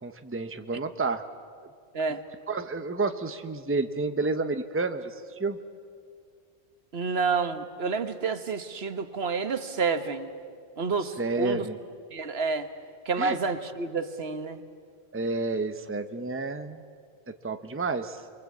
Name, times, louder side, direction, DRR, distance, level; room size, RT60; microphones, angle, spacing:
voice 1, 0.0-1.2 2.5-5.6 11.0-11.8 13.2-13.4 15.1-16.8 17.3-18.2, right 3 dB, 15° right, 8 dB, 0.9 m, -30 dB
voice 2, 6.9-10.3 10.8-11.7 12.1-12.7 13.0-14.6, right 4 dB, 70° right, 10 dB, 1.4 m, -29 dB
29.0 x 22.5 x 8.5 m, 2.1 s
omnidirectional pair, 1.1 m